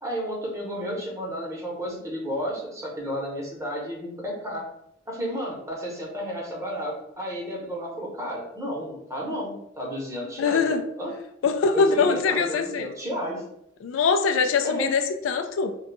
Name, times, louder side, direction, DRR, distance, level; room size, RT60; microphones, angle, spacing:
voice 1, 0.0-4.6 5.1-11.1 11.7-13.4 14.6-14.9, equal, 15° right, -3 dB, 0.9 m, -32 dB
voice 2, 10.4-10.8 11.4-12.9 13.8-15.7, left 5 dB, 75° left, 6 dB, 0.4 m, -23 dB
2.6 x 2.2 x 3.9 m, 0.73 s
head